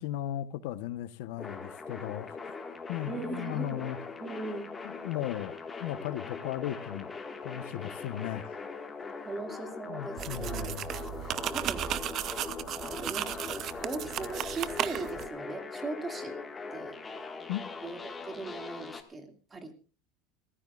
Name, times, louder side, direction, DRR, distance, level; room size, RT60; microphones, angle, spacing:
voice 1, 0.0-2.4 2.9-4.0 4.8-5.5 5.8-7.1 7.4-8.6 9.9-10.9 17.5-17.7, left 12 dB, 65° left, 1.0 m, -36 dB
sound 1, 1.4-19.0, left 4 dB, 15° left, 1.8 m, -41 dB
voice 2, 3.1-3.8 4.2-4.8 9.2-10.8 11.5-12.0 12.9-16.4 16.7-17.0 17.8-19.7, right 3 dB, 15° right, 2.4 m, -39 dB
sound 2, 10.2-15.3, right 11 dB, 35° right, 0.7 m, -35 dB
28.5 x 15.0 x 2.5 m
supercardioid pair, 160°, 0 cm